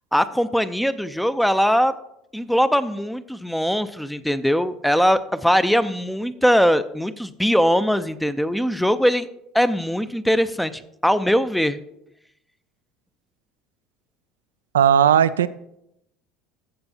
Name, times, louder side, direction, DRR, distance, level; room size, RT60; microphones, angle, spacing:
voice 1, 0.1-1.9 2.3-9.3 9.5-11.8, equal, ahead, 12 dB, 0.5 m, -21 dB
voice 2, 14.7-15.5, right 9 dB, 90° right, 14 dB, 0.3 m, -16 dB
14.5 x 6.9 x 2.8 m, 0.81 s
hypercardioid pair, 75°, 0 cm